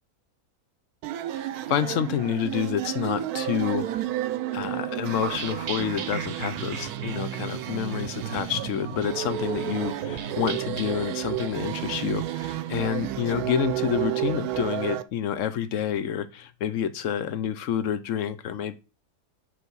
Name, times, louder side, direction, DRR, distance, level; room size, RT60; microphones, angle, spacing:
sound 1, 1.0-15.0, right 13 dB, 80° right, 1.1 m, -31 dB
voice 1, 1.7-3.9 4.5-18.8, left 9 dB, 65° left, 1.0 m, -28 dB
sound 2, 5.2-14.7, right 7 dB, 55° right, 1.0 m, -39 dB
6.1 x 5.4 x 4.6 m
omnidirectional pair, 1.6 m